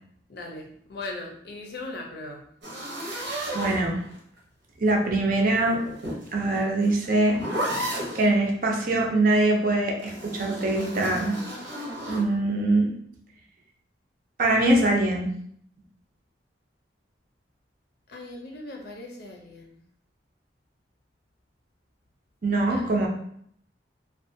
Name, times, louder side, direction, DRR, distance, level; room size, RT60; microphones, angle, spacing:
voice 1, 0.3-2.5 18.1-19.8 22.7-22.8, left 2 dB, 60° left, 1 dB, 0.5 m, -39 dB
Zipper for a tent or large bag, 2.6-4.4 5.6-8.3 10.0-12.3, right 1 dB, 80° right, 0.8 m, -33 dB
voice 2, 3.5-4.0 4.8-5.8 6.3-7.4 8.1-11.4 12.1-12.9 14.4-15.3 22.4-23.1, right 2 dB, 50° right, 1 dB, 0.5 m, -23 dB
2.5 x 2.2 x 2.6 m, 0.66 s
head